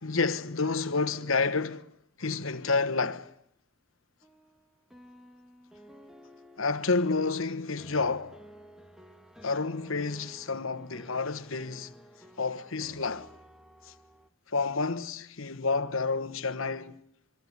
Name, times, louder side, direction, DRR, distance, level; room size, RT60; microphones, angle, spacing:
voice 1, 0.0-1.9 2.2-3.3 6.6-8.4 9.4-11.9 12.4-13.3 13.8-13.9 14.5-17.0, left 4 dB, 75° left, 1.2 m, -29 dB
sound 1, 4.2-14.3, equal, ahead, 1.3 m, -53 dB
26.0 x 23.0 x 9.5 m
head